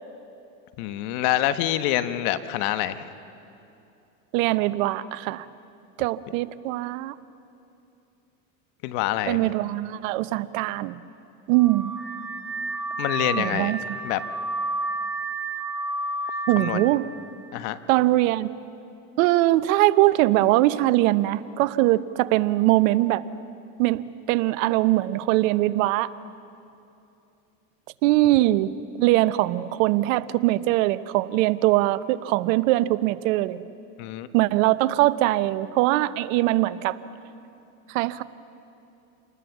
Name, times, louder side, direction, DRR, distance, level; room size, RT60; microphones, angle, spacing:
voice 1, 0.8-3.1 8.8-9.5 13.0-14.2 16.6-16.9 17.5-17.8 34.0-34.3, left 13 dB, 60° left, 11 dB, 1.3 m, -26 dB
voice 2, 4.3-5.5 6.0-7.1 9.3-11.0 11.5-12.0 13.4-13.8 16.5-17.0 17.9-18.5 19.2-23.2 23.8-26.1 28.0-28.7 29.0-33.6 34.3-37.0 37.9-38.2, right 17 dB, 65° right, 15 dB, 0.9 m, -22 dB
Car / Alarm, 11.5-17.0, right 2 dB, 5° right, 3.0 m, -31 dB
28.0 x 19.5 x 7.3 m, 2.7 s
hypercardioid pair, 100°, 42 cm